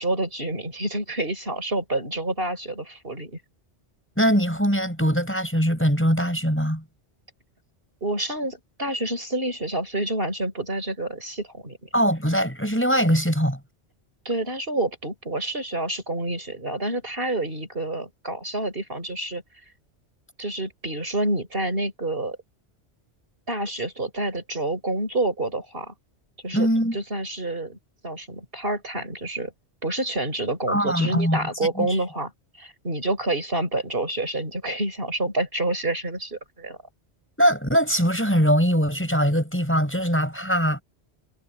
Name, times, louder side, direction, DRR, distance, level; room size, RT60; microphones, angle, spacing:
voice 1, 0.0-3.4 8.0-11.9 14.3-19.4 20.4-22.4 23.5-25.9 26.4-27.8 28.0-29.5 29.8-32.3 32.6-36.8, right 2 dB, 55° right, 5.7 m, -28 dB
voice 2, 4.2-6.8 11.9-13.6 26.5-27.0 30.7-31.5 31.8-31.9 37.4-40.8, equal, 10° left, 6.0 m, -22 dB
omnidirectional pair, 1.2 m